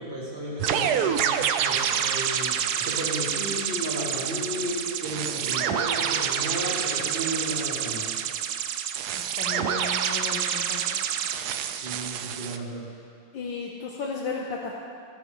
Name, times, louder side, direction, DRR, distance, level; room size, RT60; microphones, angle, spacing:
voice 1, 0.0-1.3 1.6-8.1 11.8-12.8, equal, 30° right, -6 dB, 3.0 m, -33 dB
sound 1, 0.6-12.6, right 9 dB, 75° right, 0.9 m, -27 dB
voice 2, 9.1-11.1 13.3-14.7, left 4 dB, 70° left, -2 dB, 1.7 m, -34 dB
27.0 x 9.2 x 3.2 m, 2.3 s
omnidirectional pair, 2.2 m